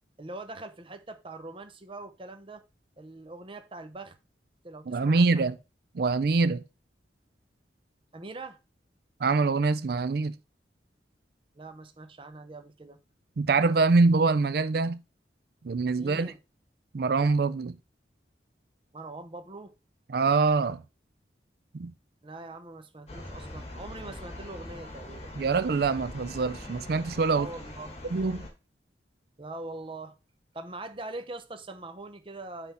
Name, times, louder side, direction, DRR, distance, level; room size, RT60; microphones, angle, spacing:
voice 1, 0.2-2.6 3.0-4.2 4.6-5.5 8.1-8.6 11.6-13.0 16.0-16.4 18.9-19.7 22.2-25.3 27.3-28.0 29.4-30.1 30.5-32.7, right 2 dB, 30° right, 0.8 m, -42 dB
voice 2, 4.9-5.6 5.9-6.6 9.2-10.3 13.4-15.0 15.6-16.3 16.9-17.8 20.1-20.8 21.8-21.9 25.4-27.5 28.1-28.4, right 4 dB, 60° right, 0.4 m, -24 dB
sound 1, 23.1-28.5, left 1 dB, 35° left, 1.6 m, -42 dB
9.4 x 3.6 x 4.3 m
head